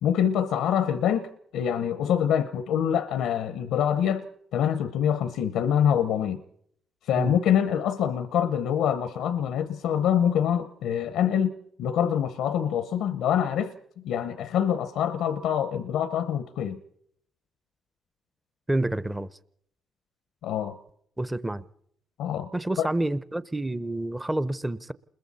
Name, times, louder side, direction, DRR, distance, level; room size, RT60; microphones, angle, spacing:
voice 1, 0.0-4.3 4.5-6.4 7.1-13.7 14.0-16.8 20.4-20.8 22.2-22.5 22.8-22.9, left 9 dB, 85° left, 0.8 m, -25 dB
voice 2, 18.7-19.3 21.2-21.6 22.5-24.9, right 1 dB, 10° right, 0.8 m, -28 dB
29.0 x 21.5 x 4.2 m
cardioid pair, 90°, 0 cm